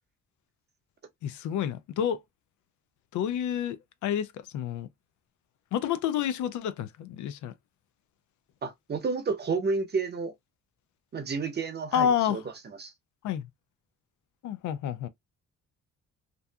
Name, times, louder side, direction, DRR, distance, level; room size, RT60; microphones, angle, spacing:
voice 1, 1.2-2.2 3.1-4.3 4.5-4.9 5.7-7.5 11.9-12.4 13.2-13.4 14.4-15.1, left 9 dB, 75° left, 0.5 m, -29 dB
voice 2, 8.6-10.3 11.1-12.4 12.8-12.9, right 4 dB, 35° right, 0.8 m, -30 dB
2.6 x 2.3 x 2.3 m
cardioid pair, 90°, 30 cm